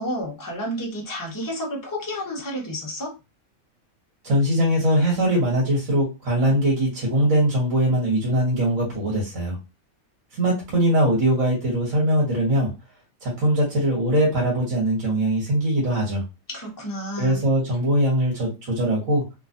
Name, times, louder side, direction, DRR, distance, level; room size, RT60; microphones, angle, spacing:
voice 1, 0.0-3.1 16.5-17.4, equal, 20° left, -1 dB, 0.6 m, -30 dB
voice 2, 4.2-9.6 10.3-12.7 13.2-16.3 17.2-19.2, right 1 dB, 70° right, -3 dB, 1.5 m, -21 dB
2.9 x 2.3 x 2.5 m, 0.26 s
omnidirectional pair, 1.4 m